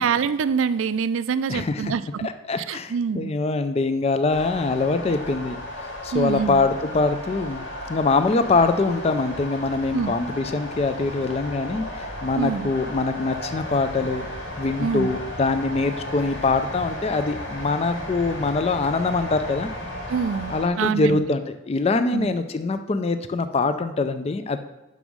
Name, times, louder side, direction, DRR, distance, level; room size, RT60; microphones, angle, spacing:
voice 1, 0.0-2.3 2.7-3.3 6.1-6.6 9.9-10.1 12.4-12.7 14.8-15.1 20.1-21.3 22.1-22.3, right 6 dB, 75° right, 15 dB, 0.4 m, -25 dB
voice 2, 1.5-1.9 2.2-14.3 14.6-19.7 20.5-24.6, left 3 dB, 30° left, 10 dB, 0.4 m, -24 dB
sound 1, 4.3-20.7, equal, 75° left, 2.2 m, -34 dB
6.1 x 5.4 x 6.1 m, 1.0 s
head